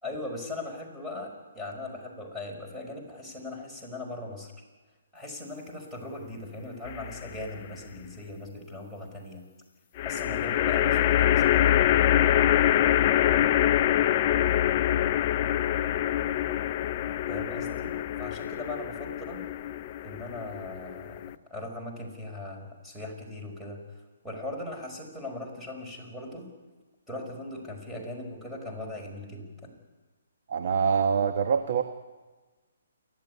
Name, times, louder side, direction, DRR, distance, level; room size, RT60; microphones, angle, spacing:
voice 1, 0.0-4.5 5.1-9.4 10.0-11.7 17.3-19.4 20.0-23.8 24.2-26.5 27.1-29.7, left 2 dB, ahead, -1 dB, 5.4 m, -39 dB
sound 1, 6.9-7.5 10.0-21.3, left 11 dB, 35° left, 0.6 m, -25 dB
voice 2, 30.5-31.8, right 6 dB, 55° right, 7 dB, 1.3 m, -25 dB
28.5 x 12.0 x 9.7 m, 1.3 s
hypercardioid pair, 145°, 0 cm